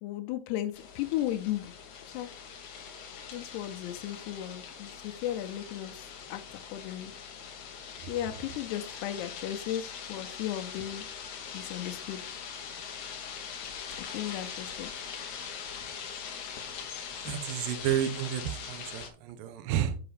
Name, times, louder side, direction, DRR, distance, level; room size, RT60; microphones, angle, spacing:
voice 1, 0.0-1.7 2.0-2.4 3.3-7.1 8.1-11.1 11.5-12.3 14.0-14.9 17.2-17.3, left 12 dB, 90° left, 6 dB, 2.7 m, -35 dB
sound 1, 0.7-19.1, left 7 dB, 65° left, 2.1 m, -42 dB
voice 2, 17.2-20.0, right 10 dB, 75° right, 10 dB, 2.2 m, -31 dB
7.9 x 4.8 x 4.9 m, 0.40 s
omnidirectional pair, 4.6 m